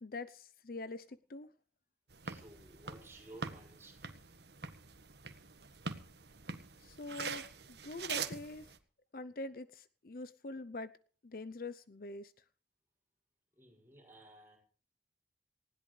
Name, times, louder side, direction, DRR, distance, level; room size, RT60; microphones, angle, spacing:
voice 1, 0.0-1.5 6.8-8.7 9.1-10.9 11.2-12.3, left 3 dB, 55° left, 14 dB, 0.7 m, -44 dB
sound 1, 2.1-8.8, right 5 dB, 70° right, 1.5 m, -44 dB
voice 2, 2.2-4.1 13.6-14.6, right 1 dB, 15° right, -1 dB, 6.8 m, -56 dB
19.5 x 16.5 x 3.3 m, 0.41 s
head